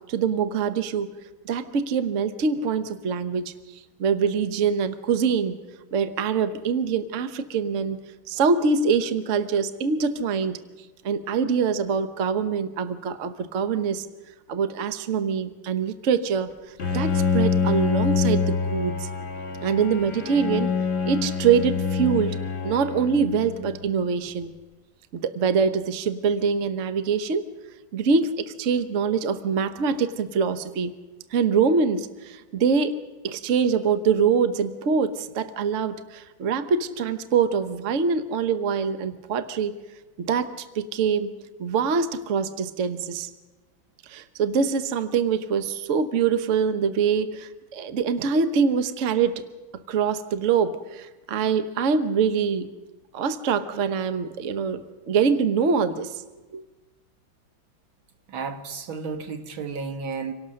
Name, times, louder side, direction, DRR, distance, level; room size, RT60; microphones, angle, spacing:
voice 1, 0.1-1.1 1.4-3.5 4.0-5.6 5.9-8.0 8.3-10.6 11.0-14.0 14.5-16.5 16.9-19.1 19.6-20.8 21.0-22.4 22.6-24.5 25.1-27.4 27.9-30.9 31.3-33.0 33.2-39.7 40.2-41.3 41.6-43.3 44.1-49.5 49.9-52.7 53.1-56.2 56.5-56.6, right 6 dB, 50° right, 11 dB, 1.1 m, -24 dB
Bowed string instrument, 16.8-23.9, left 5 dB, 35° left, 2.2 m, -26 dB
voice 2, 58.3-60.3, right 5 dB, 85° right, 7 dB, 2.2 m, -32 dB
26.5 x 17.5 x 6.4 m, 1.2 s
omnidirectional pair, 2.1 m